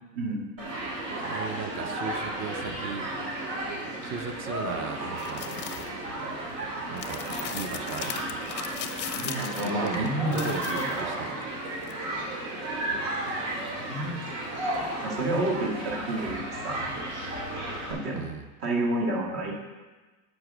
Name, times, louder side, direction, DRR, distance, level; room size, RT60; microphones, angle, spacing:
Human group actions, 0.6-17.9, right 1 dB, 75° right, 3.3 m, -33 dB
voice 1, 1.2-3.1 4.0-5.5 6.9-7.2 7.5-8.4 9.6-11.4 18.1-18.5, right 6 dB, 30° right, 9 dB, 0.6 m, -36 dB
sound 1, 5.2-5.9 7.0-11.1 11.8-11.9, left 10 dB, 30° left, 0.5 m, -38 dB
voice 2, 9.2-11.3 13.8-14.2 15.0-16.9 17.9-18.3 18.6-19.5, right 1 dB, 55° right, -1 dB, 2.3 m, -30 dB
7.9 x 5.2 x 6.3 m, 1.2 s
supercardioid pair, 135°, 40 cm